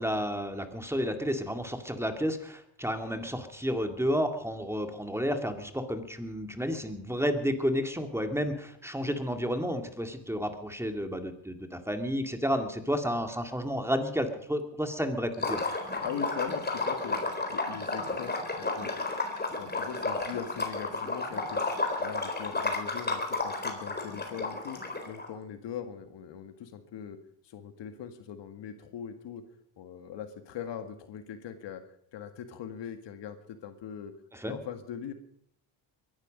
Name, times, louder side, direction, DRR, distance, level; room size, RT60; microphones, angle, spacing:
voice 1, 0.0-15.6 34.3-34.6, equal, 5° right, 6 dB, 2.2 m, -31 dB
Liquid, 15.3-25.3, left 3 dB, 20° left, 4.0 m, -32 dB
voice 2, 16.0-18.9 19.5-24.8 25.1-27.2 27.4-29.4 29.8-31.8 32.1-34.1 34.4-35.1, left 8 dB, 60° left, 8 dB, 1.9 m, -41 dB
22.0 x 12.0 x 5.2 m, 0.67 s
supercardioid pair, 70°, 48 cm